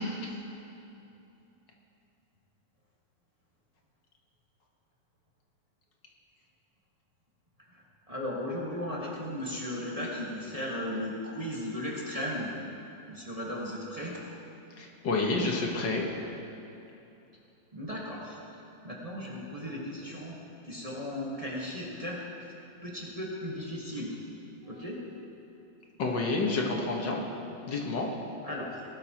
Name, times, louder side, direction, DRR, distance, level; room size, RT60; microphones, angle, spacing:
voice 1, 7.7-12.5 13.1-14.2 17.7-18.4 18.8-20.4 20.7-22.2 22.8-24.2 24.7-25.0 28.4-28.8, left 1 dB, 20° right, -5 dB, 1.5 m, -36 dB
voice 2, 14.8-16.0 26.0-27.2 27.7-28.1, left 3 dB, 70° left, 0 dB, 2.0 m, -29 dB
19.0 x 12.0 x 3.0 m, 2.8 s
omnidirectional pair, 2.0 m